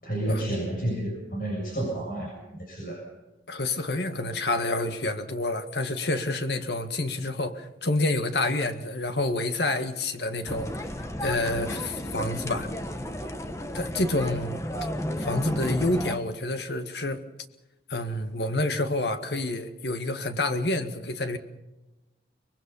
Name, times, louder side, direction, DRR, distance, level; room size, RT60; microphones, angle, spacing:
voice 1, 0.0-2.3 2.6-3.0, right 1 dB, 55° left, 6.9 m, -30 dB
voice 2, 3.5-10.9 11.2-12.7 13.7-14.6 15.2-17.2 17.9-21.4, left 2 dB, 75° left, 1.9 m, -28 dB
sound 1, 10.5-16.2, equal, 15° left, 1.3 m, -33 dB
24.5 x 22.0 x 5.6 m
head